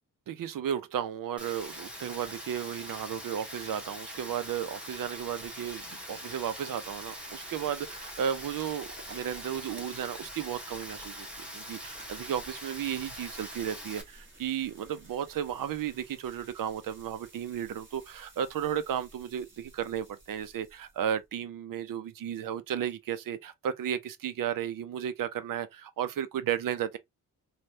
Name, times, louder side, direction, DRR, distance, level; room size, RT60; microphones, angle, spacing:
voice 1, 0.3-27.0, right 9 dB, 85° right, 0.6 m, -34 dB
Rain, 1.4-14.0, equal, 5° right, 1.0 m, -43 dB
sound 1, 5.7-8.9, right 3 dB, 65° right, 1.4 m, -59 dB
sound 2, 6.9-21.2, right 2 dB, 35° right, 1.5 m, -55 dB
3.3 x 2.3 x 2.7 m
wide cardioid pair, 130°, 32 cm